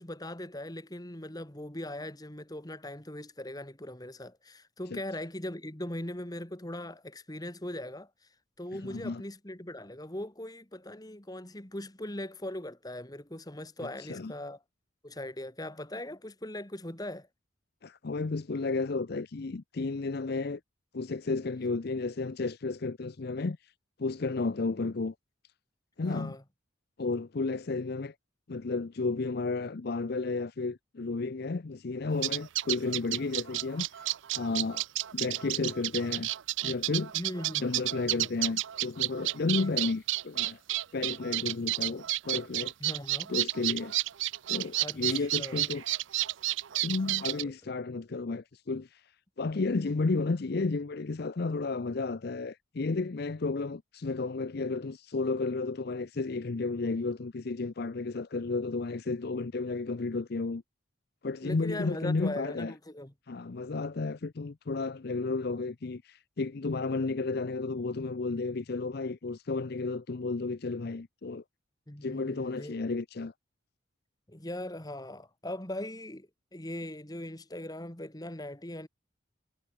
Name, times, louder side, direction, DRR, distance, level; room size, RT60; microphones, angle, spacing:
voice 1, 0.0-8.1 8.6-14.6 15.0-17.3 26.0-26.4 37.1-37.7 39.6-39.8 42.8-43.3 44.8-45.7 47.4-47.5 61.4-63.1 71.9-72.8 74.3-78.9, left 1 dB, 20° left, 1.9 m, -40 dB
voice 2, 8.7-9.2 14.0-14.3 17.8-20.6 20.9-23.7 24.0-25.1 26.0-26.4 27.0-28.1 28.5-34.1 34.3-34.8 35.1-36.3 36.6-37.1 37.6-40.6 40.9-42.7 43.3-43.9 44.5-45.8 46.8-49.1 49.4-60.6 61.2-62.7 63.3-71.4 72.0-73.3, left 3 dB, 50° left, 0.6 m, -32 dB
sound 1, 32.2-47.4, right 17 dB, 70° right, 0.5 m, -31 dB
head